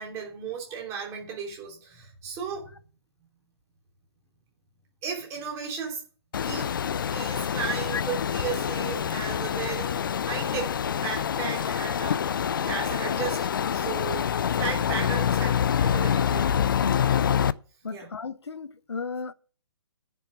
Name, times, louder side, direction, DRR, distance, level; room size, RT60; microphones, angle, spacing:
voice 1, 0.0-2.7 5.0-6.0 6.4-6.7 7.1-16.5 17.9-18.1, right 6 dB, 20° right, 3.1 m, -35 dB
sound 1, 6.3-17.5, left 8 dB, 50° left, 0.5 m, -26 dB
voice 2, 16.8-17.3 17.8-19.3, left 5 dB, 70° left, 0.9 m, -34 dB
10.0 x 5.7 x 7.0 m
figure-of-eight pair, 135°, 14 cm